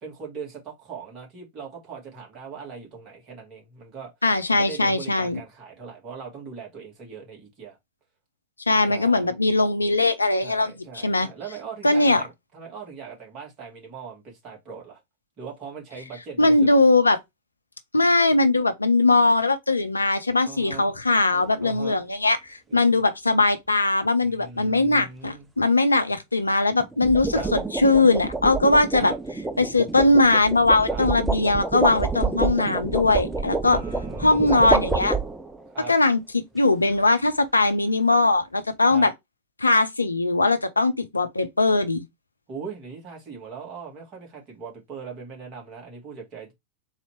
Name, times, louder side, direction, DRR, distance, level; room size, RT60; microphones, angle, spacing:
voice 1, 0.0-4.1 4.5-7.8 8.9-9.3 10.4-15.0 15.4-16.7 20.4-20.9 21.6-22.0 22.7-23.0 24.2-25.5 27.3-27.5 29.0-29.2 30.9-31.1 33.6-34.9 35.7-35.9 38.9-39.1 42.5-46.5, right 5 dB, 35° right, 2.3 m, -40 dB
voice 2, 4.2-5.4 8.7-11.3 11.8-12.2 16.4-17.2 17.9-29.1 29.6-33.8 34.2-35.2 35.9-39.1 39.6-42.0, left 2 dB, 80° left, 0.6 m, -20 dB
sound 1, 21.3-21.6 26.8-35.7, right 3 dB, 10° right, 0.6 m, -28 dB
4.0 x 2.9 x 4.5 m
figure-of-eight pair, 90°, 0 cm